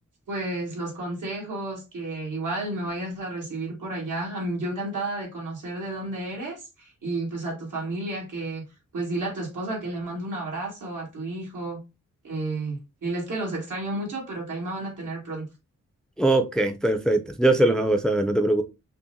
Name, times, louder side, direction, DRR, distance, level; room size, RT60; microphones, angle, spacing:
voice 1, 0.3-8.6 8.9-11.8 12.2-12.8 13.0-15.4, right 2 dB, 85° right, 1.9 m, -31 dB
voice 2, 16.2-18.6, right 2 dB, ahead, 0.3 m, -21 dB
5.6 x 2.1 x 2.6 m
wide cardioid pair, 160°, 31 cm